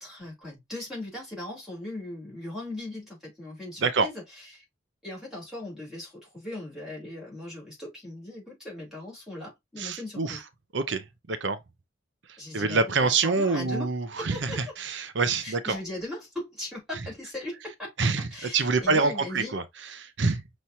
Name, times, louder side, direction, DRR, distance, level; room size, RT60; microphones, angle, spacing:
voice 1, 0.0-4.6 5.0-10.4 12.4-14.8 15.4-19.6, left 1 dB, ahead, 3.4 m, -39 dB
voice 2, 9.8-10.4 10.7-11.6 12.5-15.8 18.0-18.3 18.5-19.6 20.0-20.4, right 4 dB, 70° right, 0.7 m, -26 dB
5.6 x 3.1 x 2.7 m
head